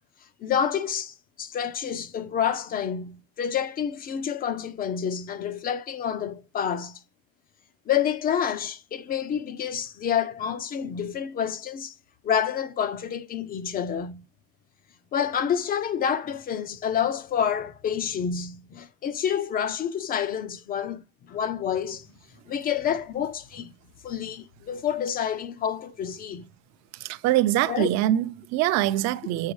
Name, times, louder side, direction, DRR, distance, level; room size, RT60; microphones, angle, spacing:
voice 1, 0.4-7.0 7.9-11.9 12.2-14.2 15.1-21.0 21.3-22.1 22.5-23.7 24.0-26.5 27.7-27.9, left 8 dB, 25° left, 0.4 m, -28 dB
voice 2, 27.0-29.5, right 14 dB, 55° right, 0.6 m, -24 dB
7.1 x 6.5 x 3.1 m
cardioid pair, 175°, 33 cm